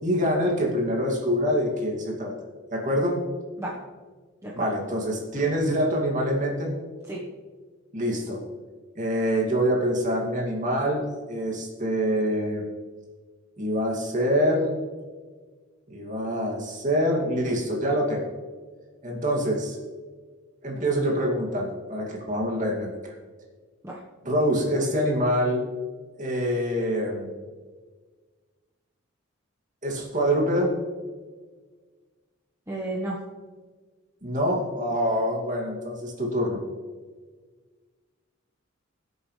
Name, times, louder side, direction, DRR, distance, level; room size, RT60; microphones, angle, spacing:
voice 1, 0.0-2.3 2.7-3.2 4.5-6.7 7.9-8.4 9.0-12.6 13.6-14.7 15.9-18.2 19.0-19.8 20.6-23.2 24.2-25.6 26.2-27.3 29.8-30.8 34.2-36.6, equal, 40° right, -1 dB, 2.5 m, -25 dB
voice 2, 32.7-33.2, right 1 dB, 15° right, -4 dB, 1.2 m, -31 dB
20.0 x 7.9 x 3.3 m, 1.5 s
head